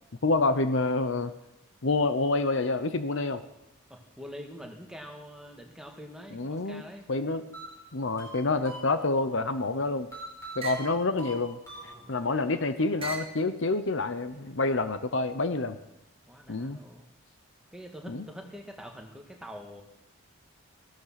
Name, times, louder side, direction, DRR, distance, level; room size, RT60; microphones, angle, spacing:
voice 1, 0.2-1.3 1.8-3.4 6.3-6.8 7.1-7.5 7.9-10.1 10.6-11.6 12.1-15.8 16.5-16.8 18.1-18.3, left 3 dB, 60° left, 11 dB, 0.8 m, -27 dB
voice 2, 3.9-7.1 16.3-17.1 17.7-19.8, equal, 5° right, 2 dB, 1.7 m, -45 dB
sound 1, 7.5-9.3 10.1-12.4, right 1 dB, 15° left, 4.4 m, -44 dB
sound 2, 9.6-10.0 10.6-10.9 11.7-12.4 13.0-13.4 14.2-14.9, right 4 dB, 25° right, 1.8 m, -41 dB
16.0 x 12.5 x 5.9 m, 0.87 s
head